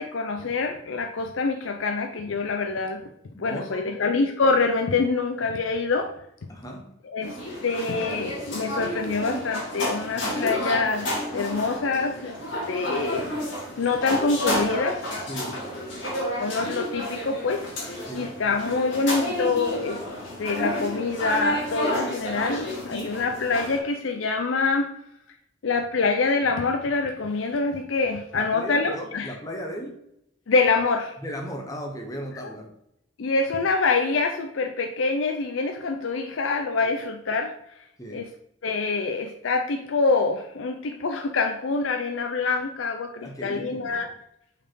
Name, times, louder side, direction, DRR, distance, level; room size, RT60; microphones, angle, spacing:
voice 1, 0.0-3.0 3.4-6.1 7.0-12.3 12.7-15.0 16.4-20.0 20.4-24.9 25.6-29.3 30.5-31.2 33.2-37.5 38.1-38.3 38.6-44.1, left 4 dB, 80° left, 4 dB, 0.5 m, -25 dB
voice 2, 3.3-3.9 6.5-6.9 15.3-15.6 18.1-18.3 28.3-30.0 31.2-32.7 36.8-36.9 38.0-38.2 43.2-44.1, equal, 20° left, 2 dB, 1.0 m, -36 dB
sound 1, 7.2-23.8, equal, 60° left, 2.1 m, -30 dB
5.4 x 4.2 x 4.6 m, 0.78 s
head